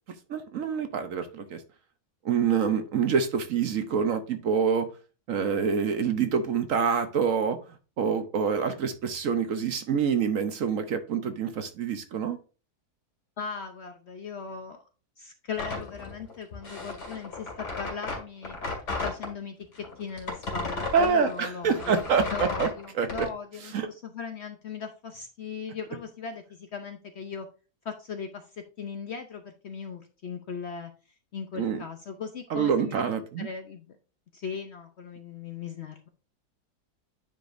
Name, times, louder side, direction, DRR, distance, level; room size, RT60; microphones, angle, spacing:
voice 1, 0.3-1.6 2.2-4.9 5.3-7.6 8.0-12.4 20.9-22.7 23.0-23.3 23.7-23.9 31.6-31.8 32.5-33.5, right 6 dB, 60° right, 8 dB, 1.1 m, -26 dB
voice 2, 13.4-14.8 15.2-18.6 19.0-22.0 22.3-27.5 27.8-30.9 31.3-34.0 34.3-36.1, left 6 dB, 55° left, 6 dB, 0.8 m, -38 dB
sound 1, 15.5-19.3 19.7-23.3, left 3 dB, 80° left, 2.7 m, -34 dB
9.2 x 5.1 x 2.6 m, 0.34 s
omnidirectional pair, 1.7 m